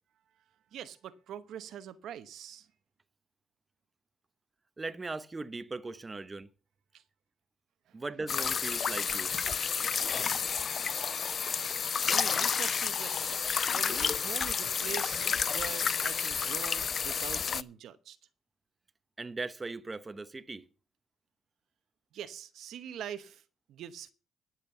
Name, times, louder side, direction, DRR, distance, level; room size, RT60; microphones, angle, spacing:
voice 1, 0.7-2.7 6.9-7.0 7.9-8.0 12.1-18.2 22.1-23.4 23.7-24.1, right 9 dB, 75° right, 0.9 m, -44 dB
voice 2, 4.8-6.5 7.9-9.3 19.2-20.7, right 3 dB, 25° right, 0.9 m, -39 dB
sound 1, 8.3-17.6, left 6 dB, 45° left, 0.5 m, -30 dB
12.0 x 7.4 x 7.1 m
cardioid pair, 90°, 0 cm